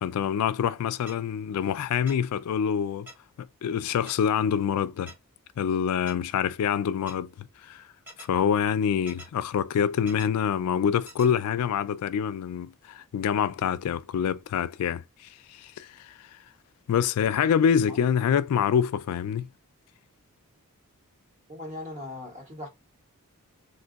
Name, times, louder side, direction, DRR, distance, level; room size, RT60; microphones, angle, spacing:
voice 1, 0.0-3.1 3.4-5.1 5.6-7.8 8.3-15.0 15.5-16.3 16.9-19.5, left 8 dB, 80° left, 0.3 m, -26 dB
sound 1, 1.1-1.2 2.1-2.2 3.1-3.2 4.1-4.2 5.1-5.2 6.1-6.2 7.1-7.2 8.1-8.3 9.1-9.3 10.1-10.3 11.1-11.3, right 1 dB, 10° right, 1.0 m, -44 dB
voice 2, 21.5-22.7, left 2 dB, 35° right, 1.4 m, -39 dB
3.7 x 2.6 x 2.3 m
head